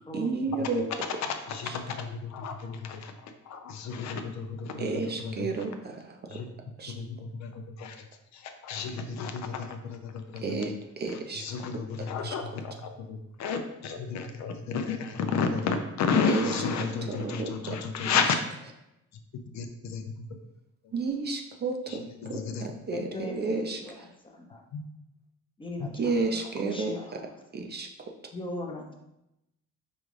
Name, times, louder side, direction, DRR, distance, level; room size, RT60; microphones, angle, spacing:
voice 1, 0.1-0.9 1.7-1.8 4.8-6.0 6.3-6.4 6.8-6.9 10.4-11.4 11.7-11.8 12.2-12.4 16.3-16.5 17.1-17.8 20.9-23.8 26.0-26.9 27.5-27.9, right 4 dB, 35° right, 3 dB, 0.5 m, -31 dB
voice 2, 1.2-5.7 6.3-6.5 6.9-8.1 8.3-10.7 11.1-18.4 19.1-19.2 19.5-20.2 21.9-22.7 24.7-24.8 25.8-25.9, left 5 dB, 65° left, 6 dB, 0.5 m, -32 dB
voice 3, 22.9-24.6 25.6-27.1 28.3-28.9, left 1 dB, 15° left, 1 dB, 0.7 m, -39 dB
5.2 x 2.4 x 3.1 m, 0.87 s
cardioid pair, 90°, 30 cm